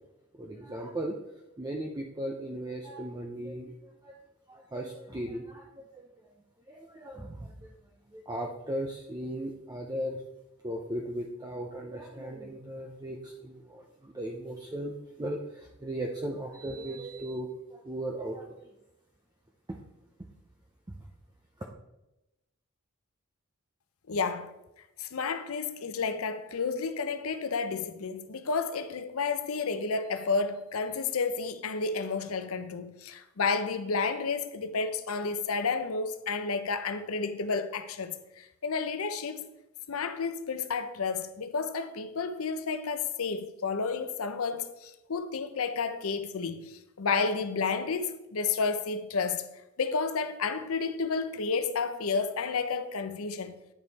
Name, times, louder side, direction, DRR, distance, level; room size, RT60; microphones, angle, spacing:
voice 1, 0.4-1.2 1.6-4.2 4.5-6.1 6.7-7.7 8.1-10.2 10.6-18.7 19.7-19.8 20.9-21.0, right 1 dB, 20° right, 0.6 m, -37 dB
voice 2, 24.1-24.5 25.0-39.5 39.9-49.5 49.8-53.5, left 4 dB, 75° left, 0.7 m, -31 dB
9.4 x 5.3 x 4.1 m
head